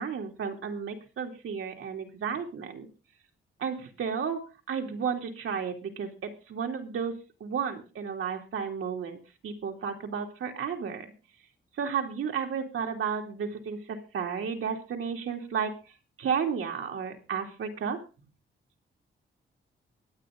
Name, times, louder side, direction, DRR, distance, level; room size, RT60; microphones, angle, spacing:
voice 1, 0.0-2.9 3.6-11.1 11.8-15.7 16.2-18.0, right 6 dB, 80° right, 3 dB, 2.7 m, -33 dB
23.5 x 9.0 x 3.7 m, 0.32 s
wide cardioid pair, 160°, 21 cm